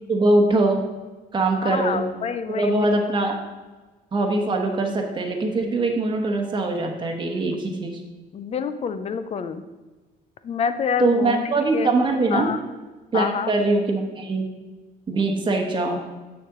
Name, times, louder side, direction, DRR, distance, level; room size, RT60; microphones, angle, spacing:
voice 1, 0.1-0.8 1.3-2.0 2.5-3.4 4.1-7.9 11.0-12.5 13.1-14.5 15.1-16.0, right 2 dB, 30° right, 2 dB, 1.1 m, -22 dB
voice 2, 1.6-2.9 8.3-9.6 10.4-11.4 11.7-11.9 12.3-12.6 13.1-13.5, left 6 dB, 40° left, 11 dB, 0.6 m, -27 dB
6.8 x 6.6 x 3.8 m, 1.2 s
cardioid pair, 110°, 17 cm